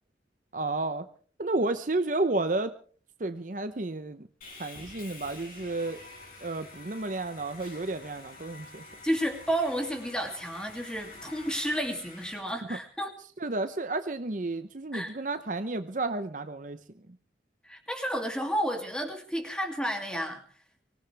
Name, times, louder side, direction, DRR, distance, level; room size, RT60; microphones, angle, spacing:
voice 1, 0.5-1.1 1.4-2.7 3.2-4.3 4.6-6.0 6.4-8.8 12.7-12.8 13.4-16.8, right 2 dB, 45° right, 10 dB, 0.8 m, -31 dB
Sawing, 4.4-12.4, left 3 dB, 50° left, 5.9 m, -48 dB
voice 2, 9.0-13.1 14.9-15.1 17.6-20.4, equal, 5° left, 3 dB, 2.6 m, -31 dB
24.5 x 17.0 x 3.4 m, 0.43 s
head